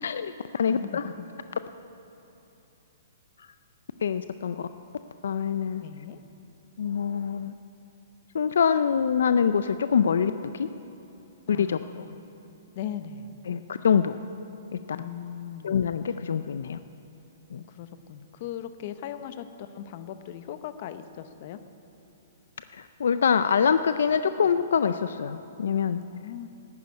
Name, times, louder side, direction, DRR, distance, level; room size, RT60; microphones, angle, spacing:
voice 1, 0.0-1.1 4.0-4.7 5.2-5.8 6.8-7.5 8.3-10.7 11.5-12.0 13.5-14.2 14.7-15.0 15.6-16.8 17.5-17.6 22.7-26.0, left 7 dB, 80° left, 11 dB, 0.4 m, -25 dB
voice 2, 0.7-1.1 5.8-6.2 11.5-12.2 12.8-13.4 14.9-15.8 17.6-21.6 26.1-26.5, left 9 dB, 45° left, 11 dB, 0.8 m, -39 dB
10.5 x 9.8 x 9.6 m, 2.9 s
hypercardioid pair, 145°, 0 cm